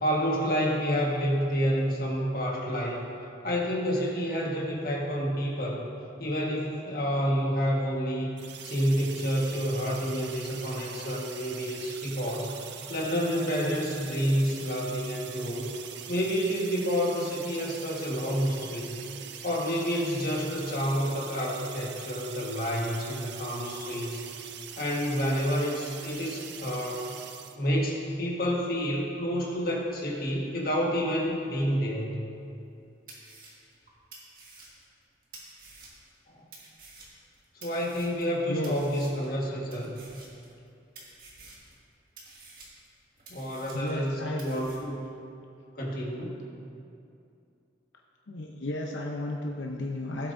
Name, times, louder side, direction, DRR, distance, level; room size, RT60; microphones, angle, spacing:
voice 1, 0.0-3.1 3.4-5.9 6.2-8.3 8.6-15.7 16.1-19.0 19.4-24.2 24.8-27.0 27.5-32.3 36.3-36.4 37.5-40.0 43.3-45.0 45.7-46.4, equal, 50° left, -3 dB, 1.6 m, -29 dB
sound 1, 8.4-27.6, right 8 dB, 70° right, 0.6 m, -43 dB
sound 2, 32.6-32.7 33.1-36.2 36.5-38.4 38.6-39.4 39.7-40.7 40.9-41.8 42.2-44.1 44.4-44.8, right 3 dB, 50° right, 1.8 m, -50 dB
voice 2, 43.7-44.4 48.3-50.3, left 1 dB, 90° left, 0 dB, 0.7 m, -33 dB
16.0 x 7.9 x 2.7 m, 2.6 s
head